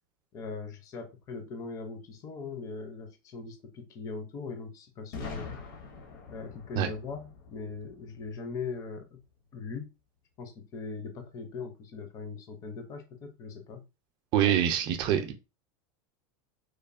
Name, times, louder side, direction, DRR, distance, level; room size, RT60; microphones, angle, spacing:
voice 1, 0.3-5.6 6.3-9.2 9.5-9.9 10.4-13.8 14.4-14.6, left 4 dB, 30° left, 0.5 m, -40 dB
Boom, 5.1-9.0, left 4 dB, 70° left, 0.8 m, -44 dB
voice 2, 14.3-15.3, right 10 dB, 40° right, 0.5 m, -25 dB
3.1 x 2.0 x 2.4 m
supercardioid pair, 145°, 12 cm